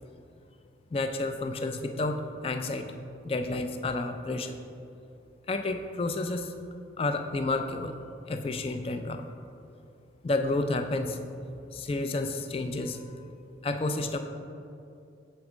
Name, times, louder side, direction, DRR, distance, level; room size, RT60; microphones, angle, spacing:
voice 1, 0.9-3.0 3.2-4.5 5.5-6.5 7.0-7.9 8.3-9.2 10.2-11.2 11.7-13.1 13.6-14.2, left 2 dB, 30° left, 6 dB, 0.3 m, -30 dB
7.0 x 4.3 x 4.9 m, 2.6 s
head